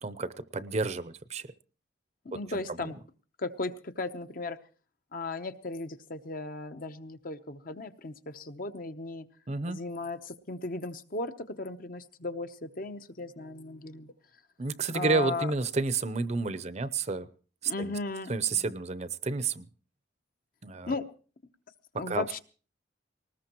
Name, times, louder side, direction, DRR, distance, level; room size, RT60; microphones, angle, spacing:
voice 1, 0.0-1.5 2.3-2.9 9.5-9.8 14.6-17.3 17.6-17.9 18.3-19.7 20.6-20.9 22.1-22.4, right 4 dB, 35° right, 13 dB, 0.6 m, -31 dB
voice 2, 2.2-2.9 3.4-4.6 5.1-9.3 9.7-14.1 14.9-15.5 17.7-18.7 20.9-21.1 22.0-22.4, left 3 dB, 50° left, 8 dB, 0.9 m, -36 dB
19.5 x 19.5 x 3.0 m, 0.39 s
head